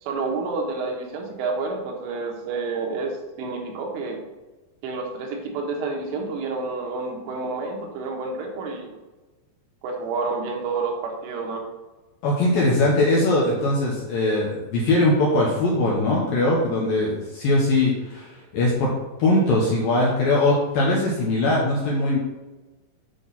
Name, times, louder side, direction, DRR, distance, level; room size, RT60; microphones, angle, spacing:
voice 1, 0.0-3.1 3.4-4.2 4.8-8.9 9.8-11.7, right 3 dB, 80° right, 1 dB, 3.8 m, -29 dB
voice 2, 12.2-18.9 19.2-22.2, left 2 dB, 70° left, -4 dB, 2.3 m, -21 dB
9.0 x 5.8 x 4.2 m, 1.1 s
omnidirectional pair, 5.5 m